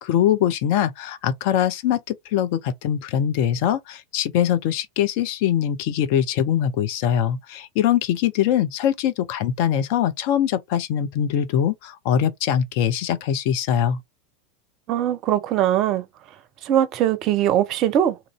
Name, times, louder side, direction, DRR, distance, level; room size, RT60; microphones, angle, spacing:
voice 1, 0.0-14.0, left 10 dB, 50° left, 0.5 m, -22 dB
voice 2, 14.9-16.1 16.6-18.3, right 11 dB, 40° right, 0.5 m, -21 dB
2.9 x 2.5 x 3.0 m
figure-of-eight pair, 85°, 0 cm